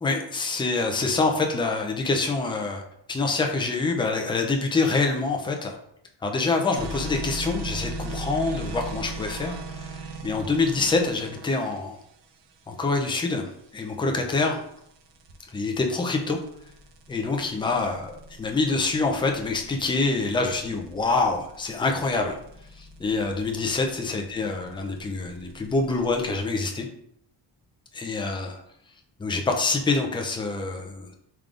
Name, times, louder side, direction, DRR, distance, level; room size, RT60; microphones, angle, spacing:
voice 1, 0.0-2.8 3.1-5.8 6.2-10.0 10.2-12.0 12.7-14.6 15.5-16.4 17.1-18.1 18.4-22.4 22.8-26.9 27.9-28.6 29.2-31.1, left 3 dB, 10° left, 3 dB, 0.3 m, -26 dB
sound 1, 6.7-26.4, right 2 dB, 65° right, 0.7 m, -40 dB
3.5 x 3.3 x 2.4 m, 0.72 s
cardioid pair, 115°, 46 cm